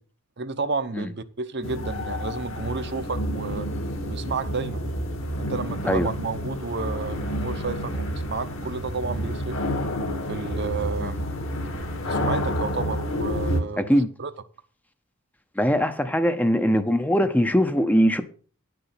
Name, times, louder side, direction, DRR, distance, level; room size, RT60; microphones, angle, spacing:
voice 1, 0.4-3.7 4.1-4.8 5.4-9.6 10.3-11.2 12.1-13.9 14.2-14.3, right 4 dB, 50° right, 0.8 m, -31 dB
sound 1, 1.6-13.6, equal, 60° left, 1.7 m, -29 dB
voice 2, 13.8-14.1 15.6-18.2, equal, 5° left, 0.6 m, -21 dB
10.0 x 6.8 x 5.7 m
head